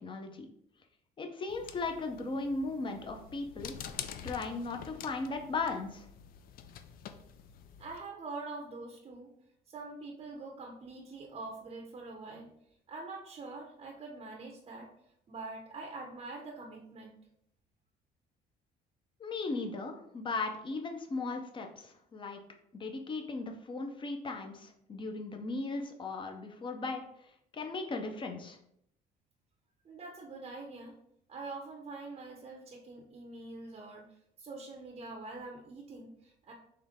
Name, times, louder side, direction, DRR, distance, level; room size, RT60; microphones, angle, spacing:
voice 1, 0.0-0.5 1.2-3.7 4.2-6.1 19.2-22.4 22.7-27.0 27.5-28.6, left 3 dB, 30° left, 4 dB, 0.7 m, -37 dB
sound 1, 1.5-8.0, left 8 dB, 60° left, 0.4 m, -47 dB
voice 2, 7.8-9.3 9.7-12.5 12.9-14.9 15.3-17.2 29.8-31.0 31.3-34.0 34.4-36.5, right 3 dB, 35° right, 1 dB, 0.7 m, -44 dB
3.8 x 3.2 x 3.5 m, 0.73 s
cardioid pair, 110°, 17 cm